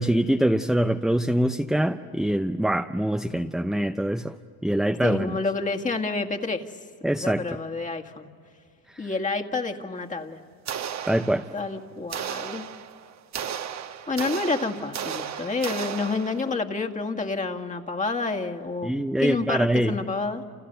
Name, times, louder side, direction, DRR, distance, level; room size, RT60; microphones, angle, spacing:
voice 1, 0.0-4.3 4.6-5.4 7.0-7.4 9.0-9.1 11.1-11.4 18.8-20.0, right 1 dB, ahead, 6 dB, 0.7 m, -24 dB
voice 2, 5.0-6.6 7.1-8.3 9.0-10.4 11.5-12.7 14.1-18.9 19.2-20.4, left 3 dB, 20° left, 3 dB, 2.0 m, -29 dB
sound 1, 10.7-11.7 12.1-16.6, right 8 dB, 45° right, 1.5 m, -34 dB
29.5 x 29.5 x 6.8 m, 2.2 s
cardioid pair, 110°, 38 cm